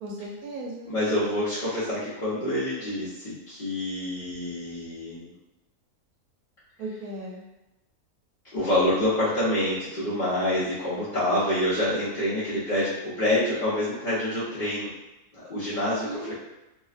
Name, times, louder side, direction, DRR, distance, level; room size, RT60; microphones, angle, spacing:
voice 1, 0.0-1.0 6.8-7.4 16.0-16.3, right 2 dB, 85° right, -2 dB, 1.1 m, -36 dB
voice 2, 0.9-5.3 8.5-12.9 13.2-14.9 15.3-16.3, left 1 dB, 45° left, -12 dB, 0.6 m, -27 dB
2.7 x 2.1 x 2.4 m, 0.98 s
omnidirectional pair, 1.6 m